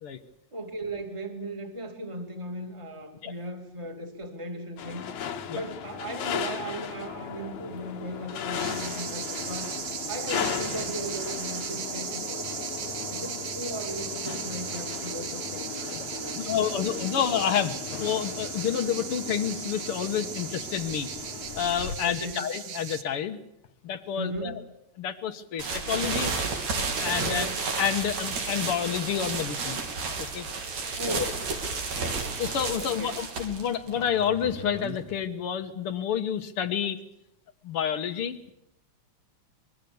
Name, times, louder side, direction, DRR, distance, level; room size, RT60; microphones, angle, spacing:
voice 1, 0.5-9.8 10.1-12.6 13.1-17.1 22.0-22.3 24.1-24.6 27.2-27.6 31.0-31.4 32.8-33.1, right 1 dB, 10° right, 5 dB, 2.6 m, -37 dB
sound 1, 4.8-22.0, left 8 dB, 75° left, 2.8 m, -37 dB
sound 2, 8.5-23.0, right 7 dB, 50° right, 1.6 m, -37 dB
voice 2, 16.4-21.1 21.6-23.4 23.8-24.5 25.0-26.3 27.0-27.5 27.8-29.8 30.2-30.5 31.1-31.3 32.4-37.0 37.6-38.5, left 8 dB, 55° left, 9 dB, 1.9 m, -29 dB
sound 3, 25.6-35.2, right 4 dB, 70° right, 4.5 m, -32 dB
25.0 x 22.5 x 7.1 m, 0.81 s
omnidirectional pair, 3.4 m